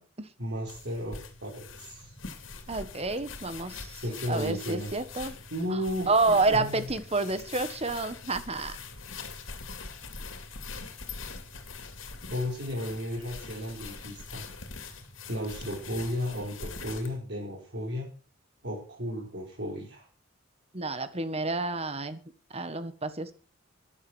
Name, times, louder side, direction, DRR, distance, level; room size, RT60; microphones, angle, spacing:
voice 1, 0.4-2.1 3.9-4.9 5.5-6.9 12.3-14.4 15.3-18.1 18.6-20.1, equal, 60° right, -3 dB, 5.1 m, -34 dB
sound 1, 0.7-17.2, left 4 dB, 80° left, 2.8 m, -43 dB
voice 2, 2.7-4.0 4.3-5.3 5.7-5.8 6.1-8.8 20.7-22.2 22.5-23.3, right 3 dB, 30° right, 12 dB, 1.5 m, -29 dB
13.5 x 11.5 x 6.4 m, 0.37 s
head